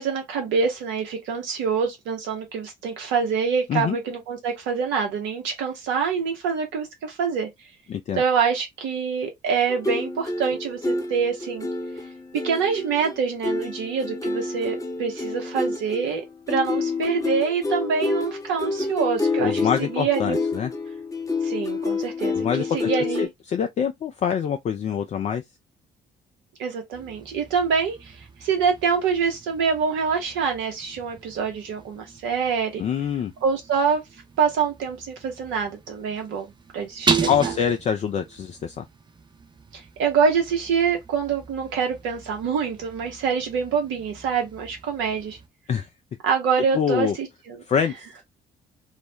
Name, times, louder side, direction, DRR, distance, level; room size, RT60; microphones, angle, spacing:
voice 1, 0.0-7.5 8.1-11.7 12.4-16.2 16.5-20.4 21.4-23.3 26.6-32.8 33.4-34.0 34.4-36.5 36.7-37.5 39.7-45.4 46.2-47.6, right 6 dB, 65° right, 0.9 m, -25 dB
voice 2, 7.9-8.2 19.4-20.7 22.3-22.9 23.2-25.4 32.8-33.3 37.3-38.9 45.7-45.9 46.7-47.1 47.7-47.9, left 7 dB, 35° left, 0.4 m, -25 dB
sound 1, 9.7-23.3, left 3 dB, 15° left, 0.8 m, -28 dB
sound 2, 26.9-45.5, right 5 dB, 20° right, 0.5 m, -36 dB
2.4 x 2.1 x 2.7 m
hypercardioid pair, 50°, 21 cm